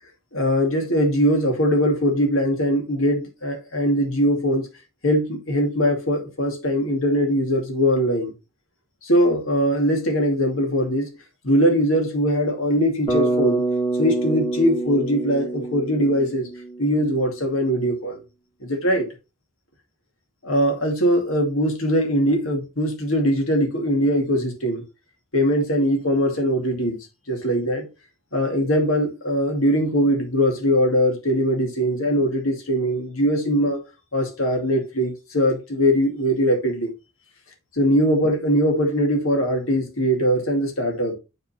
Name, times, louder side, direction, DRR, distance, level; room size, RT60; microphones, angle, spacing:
voice 1, 0.3-4.7 5.0-8.3 9.0-11.1 11.4-13.6 14.0-16.5 16.8-18.2 18.6-19.1 20.4-24.8 25.3-27.0 27.3-27.9 28.3-33.8 34.1-36.9 37.8-41.1, equal, 85° left, 2.5 m, -21 dB
Bass guitar, 13.1-17.2, right 2 dB, 25° left, 1.5 m, -26 dB
9.2 x 4.0 x 4.3 m
head